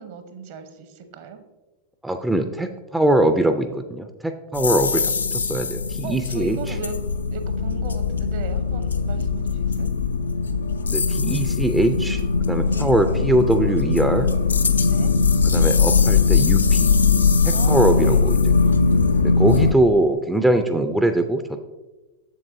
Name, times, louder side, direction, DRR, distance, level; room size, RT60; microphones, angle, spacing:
voice 1, 0.0-1.4 6.0-7.0 7.3-9.9 12.7-13.0 14.9-15.1 17.5-18.2, right 6 dB, 50° right, 9 dB, 0.8 m, -37 dB
voice 2, 2.0-6.7 10.9-12.2 12.5-14.3 15.4-16.9 17.4-18.4 19.2-21.6, right 1 dB, 5° right, 7 dB, 0.4 m, -22 dB
sound 1, 4.5-19.7, left 5 dB, 75° left, 0.4 m, -20 dB
7.6 x 7.3 x 2.6 m, 1.1 s
figure-of-eight pair, 90°, 0 cm